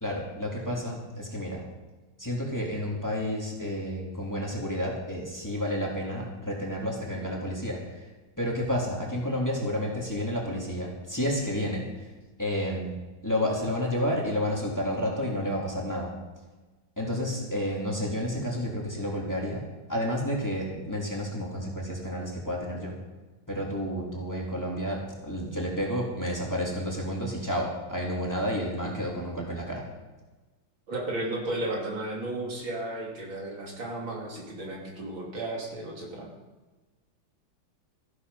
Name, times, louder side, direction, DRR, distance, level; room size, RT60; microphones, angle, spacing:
voice 1, 0.0-1.6 2.2-8.0 8.4-11.8 12.4-12.9 13.2-16.1 17.0-19.6 19.9-22.9 23.5-29.8, equal, 10° left, -2 dB, 2.8 m, -30 dB
voice 2, 30.9-36.3, right 1 dB, 85° right, -1 dB, 3.7 m, -34 dB
14.5 x 11.0 x 5.6 m, 1.2 s
omnidirectional pair, 2.1 m